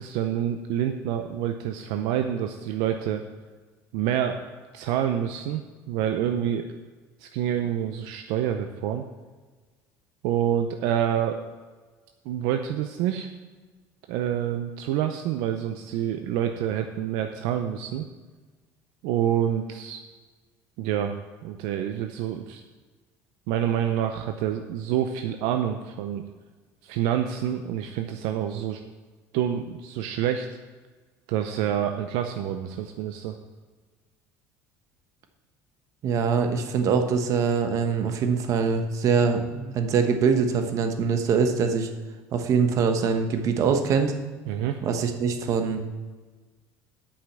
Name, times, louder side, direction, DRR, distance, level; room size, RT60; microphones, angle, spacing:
voice 1, 0.0-3.2 3.9-4.4 4.7-5.6 5.9-6.7 7.2-9.0 10.2-11.4 12.3-13.3 14.1-18.1 19.0-20.0 20.8-21.1 21.4-22.6 23.5-26.2 26.8-28.8 29.3-30.5 31.3-33.4 44.5-44.8, right 10 dB, 80° right, 6 dB, 0.6 m, -27 dB
voice 2, 36.0-41.9 42.3-44.1 44.8-45.8, right 5 dB, 50° right, 6 dB, 1.2 m, -23 dB
8.5 x 5.7 x 7.5 m, 1.4 s
cardioid pair, 115°, 7 cm